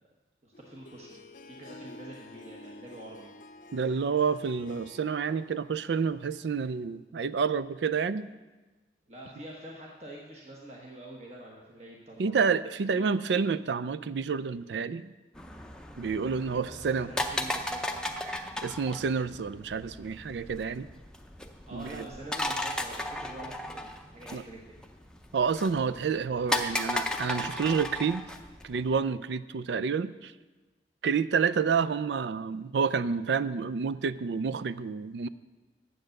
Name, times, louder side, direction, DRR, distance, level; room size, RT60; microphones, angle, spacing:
voice 1, 0.4-1.2 1.5-3.3 9.1-12.4 12.9-13.1 16.7-18.1 21.7-24.9, right 1 dB, 40° right, -2 dB, 1.2 m, -46 dB
Harp, 0.5-7.0, left 2 dB, 45° left, 0.6 m, -51 dB
voice 2, 3.7-8.3 12.2-15.1 16.0-17.1 18.3-20.9 21.7-22.1 24.3-24.4 25.3-28.2 28.6-30.3 31.0-35.3, right 5 dB, 85° right, 15 dB, 0.4 m, -29 dB
sound 1, 15.3-29.0, left 1 dB, 5° left, 0.5 m, -36 dB
9.6 x 7.8 x 6.5 m, 1.2 s
head